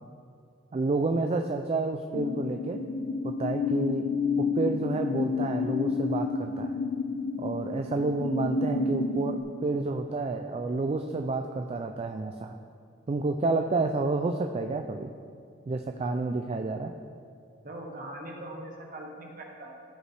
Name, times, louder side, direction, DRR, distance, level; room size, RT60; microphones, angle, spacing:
voice 1, 0.7-2.8 3.2-4.0 4.5-6.7 7.4-12.5 13.1-15.1 15.7-16.9, right 3 dB, 35° right, 5 dB, 0.3 m, -29 dB
sound 1, 2.1-9.4, left 4 dB, 55° left, 0.5 m, -30 dB
voice 2, 17.6-19.7, right 1 dB, 50° right, 0 dB, 1.2 m, -41 dB
14.0 x 5.3 x 3.4 m, 2.3 s
head